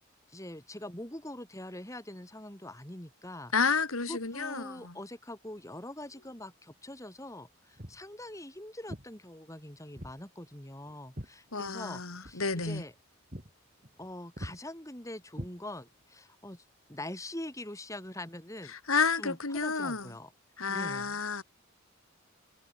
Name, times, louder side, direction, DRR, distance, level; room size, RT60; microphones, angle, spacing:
voice 1, 0.3-3.5 4.0-12.9 14.0-16.6 16.9-18.7 19.2-20.3 20.7-21.2, left 1 dB, 15° left, 3.1 m, -43 dB
voice 2, 3.5-4.9 11.5-12.8 18.9-20.1 20.6-21.4, left 5 dB, 75° left, 2.6 m, -30 dB
Walk footsteps, 7.8-8.1 8.9-9.1 10.0-10.2 10.5-11.9 12.2-12.4 12.8-13.0 13.3-13.5 13.8-14.1 14.4-14.6 15.3-16.0, equal, 35° right, 5.6 m, -43 dB
head